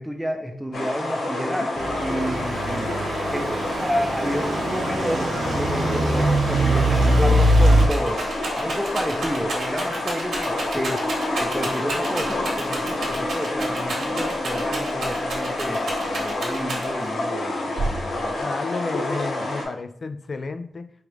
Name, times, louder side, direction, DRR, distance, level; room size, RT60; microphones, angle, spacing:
voice 1, 0.0-3.0 3.3-3.5 3.8-8.3 8.5-11.1 11.4-18.4, equal, ahead, 4 dB, 0.6 m, -30 dB
sound 1, 0.7-19.6, left 2 dB, 80° left, 0.8 m, -28 dB
Truck / Idling, 1.8-7.9, right 1 dB, 65° right, 0.5 m, -22 dB
Rattle, 7.6-17.1 17.8-18.4, right 2 dB, 80° right, 1.1 m, -31 dB
voice 2, 18.4-20.9, left 4 dB, 50° left, 9 dB, 0.3 m, -31 dB
4.6 x 2.4 x 3.1 m, 0.68 s
cardioid pair, 70°, 0 cm